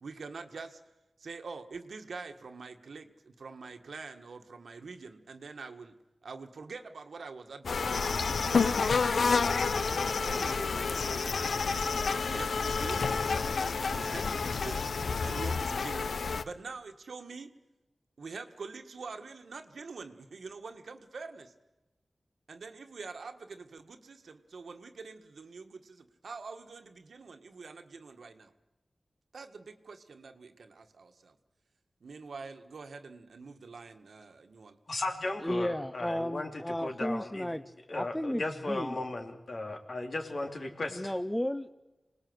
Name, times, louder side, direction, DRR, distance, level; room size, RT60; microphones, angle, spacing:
voice 1, 0.0-0.8 1.2-5.9 6.2-9.4 9.6-10.7 11.8-13.1 13.9-14.9 15.2-17.5 18.2-21.5 22.5-28.5 29.3-31.3 32.0-34.8, right 4 dB, 90° right, 7 dB, 1.7 m, -45 dB
sound 1, 7.6-16.4, left 4 dB, 90° left, 0.8 m, -29 dB
voice 2, 34.9-37.5 37.9-40.9, left 2 dB, 55° left, 3 dB, 3.4 m, -36 dB
voice 3, 35.4-37.6 37.9-39.0 40.9-41.7, left 1 dB, 10° left, 11 dB, 0.7 m, -33 dB
26.0 x 19.5 x 8.0 m, 1.1 s
wide cardioid pair, 80°, 0 cm